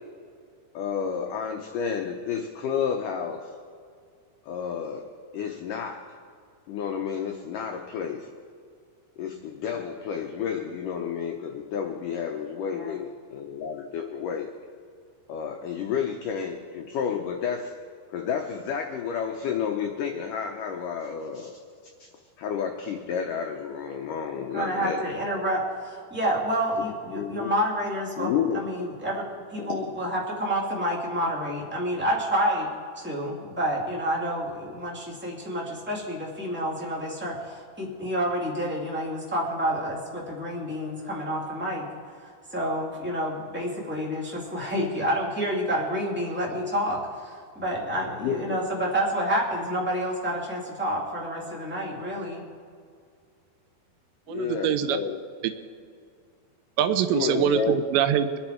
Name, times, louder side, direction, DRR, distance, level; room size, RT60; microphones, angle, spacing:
voice 1, 0.7-3.5 4.5-5.1 5.3-6.1 6.7-8.3 9.2-14.5 15.3-17.7 18.1-21.5 22.0-22.1 22.4-25.0 27.1-27.5 28.2-28.6 29.6-29.9 48.2-48.6 54.3-55.2 57.1-57.8, left 7 dB, 85° left, 3 dB, 1.8 m, -31 dB
voice 2, 24.5-29.2 29.5-32.7 32.9-52.4, equal, 5° right, -3 dB, 1.1 m, -29 dB
voice 3, 54.3-55.0 55.4-55.5 56.8-58.4, right 9 dB, 85° right, 10 dB, 3.0 m, -23 dB
24.5 x 9.8 x 4.5 m, 2.2 s
omnidirectional pair, 5.0 m